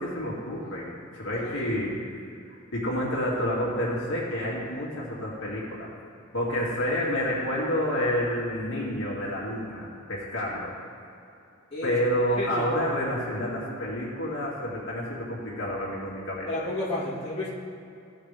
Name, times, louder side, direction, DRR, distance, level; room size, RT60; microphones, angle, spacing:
voice 1, 0.0-2.0 2.5-5.9 6.3-10.8 11.8-16.5, equal, 65° left, -5 dB, 2.3 m, -29 dB
voice 2, 16.5-17.5, left 1 dB, 25° left, -9 dB, 2.0 m, -31 dB
16.0 x 5.8 x 3.4 m, 2.6 s
head